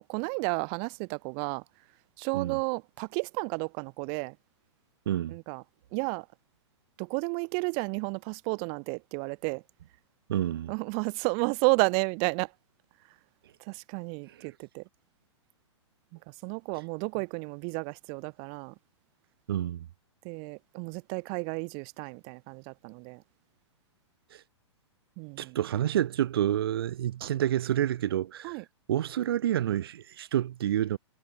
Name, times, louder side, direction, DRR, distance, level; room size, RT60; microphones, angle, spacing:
voice 1, 0.0-1.6 2.2-4.3 5.3-5.6 5.9-6.3 7.0-9.6 10.7-12.5 13.6-14.8 16.3-18.7 20.2-23.2 25.2-25.6 28.4-28.6, right 40 dB or more, 35° right, 3.1 m, -32 dB
voice 2, 5.1-5.4 10.3-10.7 19.5-19.9 25.4-28.6 28.9-31.0, right 11 dB, 50° right, 3.2 m, -28 dB
figure-of-eight pair, 110°, 15 cm